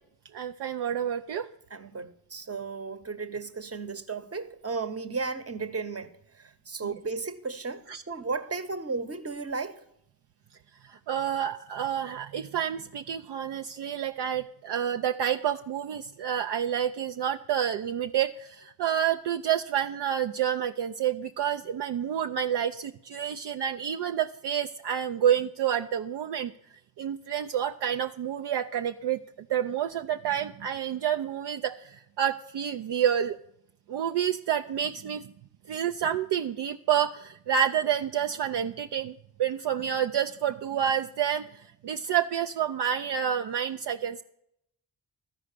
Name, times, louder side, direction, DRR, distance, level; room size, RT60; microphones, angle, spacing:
voice 1, 0.3-1.5 6.8-6.9 7.9-8.0 10.8-26.5 27.0-29.2 29.5-33.4 33.9-35.3 35.7-41.5 41.8-44.2, right 9 dB, 65° right, 0.5 m, -29 dB
voice 2, 1.7-6.1 6.4-9.7, right 4 dB, 30° right, 1.0 m, -34 dB
12.5 x 4.9 x 6.6 m
supercardioid pair, 40°, 45 cm